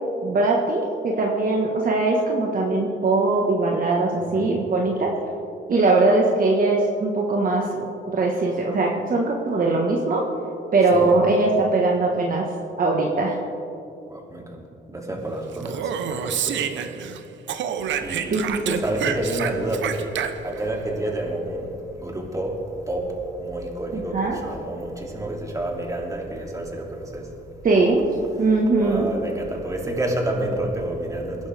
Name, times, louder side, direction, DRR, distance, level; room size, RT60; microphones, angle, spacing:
voice 1, 0.2-5.1 5.7-10.2 10.7-12.4 12.8-13.4 18.3-18.8 23.9-24.4 27.6-28.0 28.4-29.1, right 3 dB, 45° right, -1 dB, 1.5 m, -21 dB
voice 2, 14.1-17.0 17.8-18.4 18.8-27.3 28.8-31.5, right 1 dB, 15° right, -1 dB, 2.9 m, -29 dB
Speech, 15.5-17.2 17.5-20.6, right 8 dB, 70° right, 0.9 m, -28 dB
22.0 x 11.5 x 3.6 m, 2.8 s
cardioid pair, 90°, 20 cm